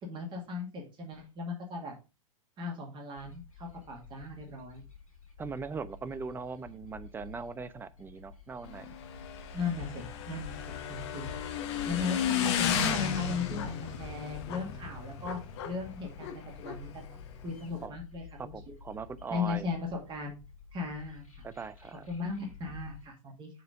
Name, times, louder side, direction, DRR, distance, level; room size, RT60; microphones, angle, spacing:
voice 1, 0.0-1.9 2.6-4.8 9.5-15.4 15.6-18.5 19.3-20.4 20.7-21.5 22.1-23.5, left 4 dB, 25° right, 2.3 m, -37 dB
sound 1, 3.1-23.1, left 5 dB, 85° left, 2.7 m, -50 dB
voice 2, 5.4-9.0 12.0-12.1 17.8-18.0 18.4-19.7 21.4-22.0, right 5 dB, 10° right, 0.5 m, -40 dB
Motorcycle / Engine, 8.6-17.9, left 8 dB, 50° left, 1.2 m, -34 dB
7.5 x 4.1 x 5.1 m
figure-of-eight pair, 95°, 18 cm